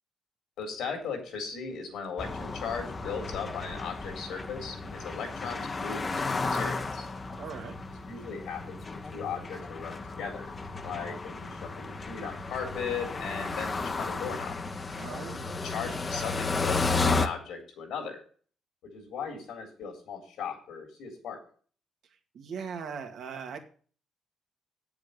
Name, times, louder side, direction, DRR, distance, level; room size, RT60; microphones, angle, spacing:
voice 1, 0.6-7.1 8.1-10.5 10.8-14.6 15.6-18.2 18.8-21.4, left 6 dB, 80° left, 3 dB, 3.8 m, -37 dB
sound 1, 2.2-17.3, left 3 dB, 30° left, 1.0 m, -33 dB
voice 2, 7.4-7.8 15.0-15.7 22.3-23.6, right 6 dB, 70° right, 5 dB, 2.1 m, -39 dB
8.5 x 7.2 x 6.7 m, 0.43 s
cardioid pair, 90°, 0 cm